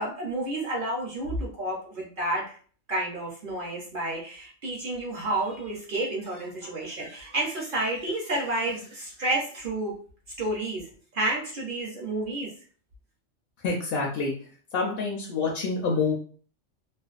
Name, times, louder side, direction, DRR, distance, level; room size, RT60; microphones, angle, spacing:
voice 1, 0.0-2.5 2.9-10.0 10.4-10.8 11.1-12.5, right 2 dB, 55° right, -2 dB, 0.7 m, -30 dB
voice 2, 13.6-14.3 14.7-16.1, left 4 dB, 60° left, -1 dB, 0.6 m, -27 dB
2.4 x 2.2 x 2.3 m, 0.43 s
omnidirectional pair, 1.3 m